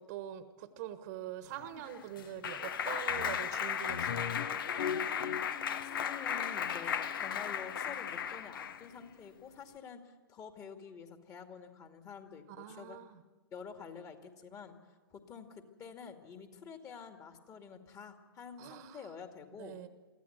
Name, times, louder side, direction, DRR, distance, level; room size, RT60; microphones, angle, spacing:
voice 1, 0.0-4.4 12.5-13.2 18.6-19.1 19.6-19.9, right 11 dB, 45° right, 11 dB, 1.4 m, -44 dB
Clapping, 1.6-8.9, left 8 dB, 65° left, 1.1 m, -35 dB
voice 2, 5.8-13.0 13.5-14.8 15.1-19.8, left 6 dB, 25° left, 6 dB, 2.3 m, -48 dB
24.0 x 15.0 x 8.1 m, 1.3 s
figure-of-eight pair, 110°, 12 cm